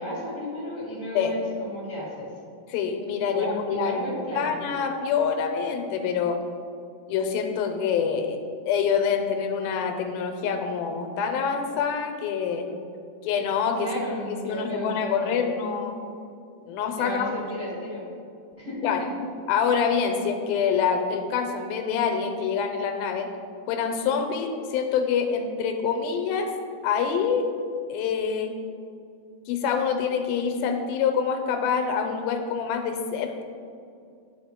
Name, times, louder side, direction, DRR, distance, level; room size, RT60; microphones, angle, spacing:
voice 1, 0.0-2.3 3.2-4.5 13.8-15.7 17.0-18.0 18.6-18.9, equal, 30° right, -9 dB, 1.2 m, -33 dB
voice 2, 2.7-4.1 4.3-6.4 7.1-8.4 8.7-12.7 13.2-13.9 14.4-16.0 16.7-17.4 18.8-19.0 19.5-23.3 23.7-26.5 26.8-27.5 27.9-28.5 29.5-33.4, left 6 dB, 90° left, 5 dB, 2.5 m, -26 dB
10.5 x 4.2 x 3.6 m, 2.4 s
omnidirectional pair, 4.2 m